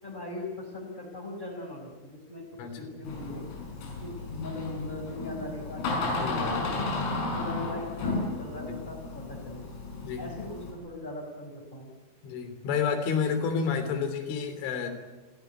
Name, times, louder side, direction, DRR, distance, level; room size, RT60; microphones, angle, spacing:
voice 1, 0.0-2.4 2.8-3.4 4.0-6.9 7.3-9.6 10.2-11.9, left 2 dB, 10° left, -4 dB, 4.1 m, -40 dB
Door, 3.0-10.7, left 3 dB, 85° left, 8.5 m, -33 dB
voice 2, 6.2-6.6 8.7-8.8 10.0-10.2 12.2-14.9, left 6 dB, 70° left, 8 dB, 5.5 m, -30 dB
26.5 x 16.5 x 9.4 m, 1.2 s
omnidirectional pair, 5.9 m